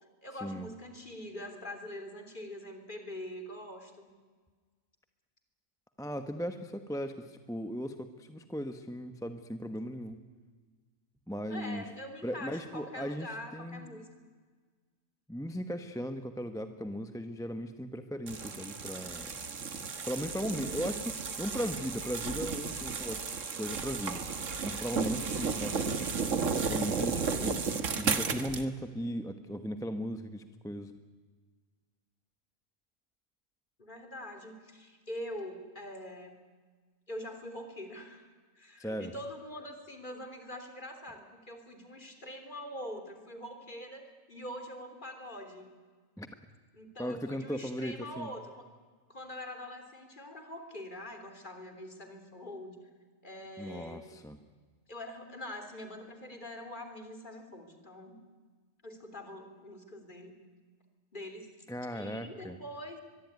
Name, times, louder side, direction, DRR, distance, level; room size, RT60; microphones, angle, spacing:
voice 1, 0.2-4.1 11.5-14.1 33.8-36.3 37.1-38.3 38.5-44.0 44.3-45.7 46.7-48.7 49.1-52.8 53.2-54.2 54.9-58.2 58.8-60.3 61.1-61.5 61.9-63.0, left 1 dB, 35° left, 5 dB, 3.4 m, -44 dB
voice 2, 6.0-10.2 11.3-11.9 12.2-14.0 15.3-19.3 20.1-24.2 24.6-26.0 26.7-27.6 28.0-30.9 38.8-39.1 46.2-46.3 47.0-48.3 53.6-54.4 61.7-62.6, equal, 5° left, 8 dB, 1.0 m, -37 dB
sound 1, 18.3-28.6, right 5 dB, 65° right, 1.8 m, -34 dB
23.0 x 23.0 x 9.5 m, 1.5 s
omnidirectional pair, 1.4 m